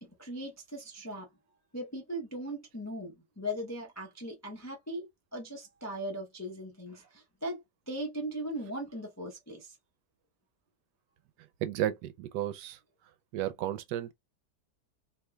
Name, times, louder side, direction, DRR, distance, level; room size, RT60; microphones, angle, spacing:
voice 1, 0.0-1.3 1.7-9.8, equal, 25° left, 0.3 m, -39 dB
voice 2, 11.6-12.8 13.3-14.1, right 12 dB, 80° right, 1.2 m, -33 dB
3.3 x 2.9 x 2.2 m
omnidirectional pair, 1.8 m